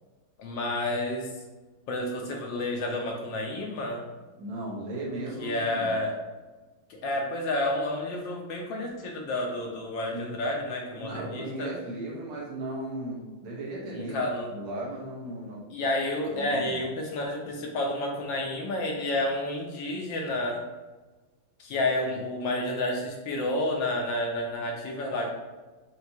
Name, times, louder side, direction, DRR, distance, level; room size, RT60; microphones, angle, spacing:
voice 1, 0.4-1.3 1.9-4.1 5.4-6.2 6.9-11.7 13.9-14.5 15.7-20.6 21.6-25.3, left 1 dB, 75° left, 0 dB, 1.2 m, -30 dB
voice 2, 4.4-5.9 10.1-10.4 11.0-14.2 14.5-15.6 16.3-16.8, right 1 dB, 80° right, -4 dB, 1.9 m, -36 dB
5.8 x 2.2 x 2.7 m, 1.2 s
omnidirectional pair, 2.3 m